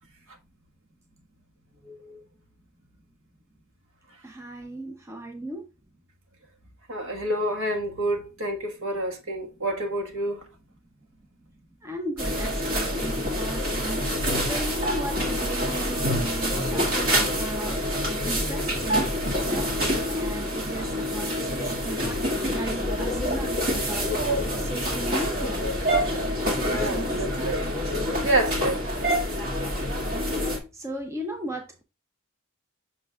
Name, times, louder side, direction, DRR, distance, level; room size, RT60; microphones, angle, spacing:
voice 1, 1.8-2.2 6.9-10.4 26.5-27.6 28.2-28.8, right 1 dB, 65° right, 1.5 m, -28 dB
voice 2, 4.2-5.7 11.4-11.5 11.8-28.3 30.7-31.8, right 1 dB, 15° right, 0.6 m, -37 dB
sound 1, 12.2-30.6, equal, 40° right, 1.9 m, -26 dB
7.8 x 6.0 x 2.3 m
head